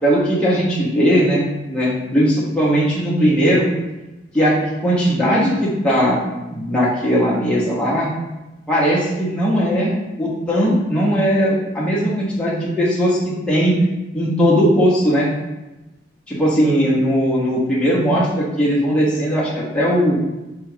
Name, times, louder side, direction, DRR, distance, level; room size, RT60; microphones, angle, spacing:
voice 1, 0.0-3.7 4.3-6.2 6.5-8.1 8.7-9.9 10.2-13.8 14.1-15.3 16.3-20.2, equal, 5° left, -7 dB, 0.8 m, -18 dB
4.4 x 2.4 x 4.8 m, 1.0 s
head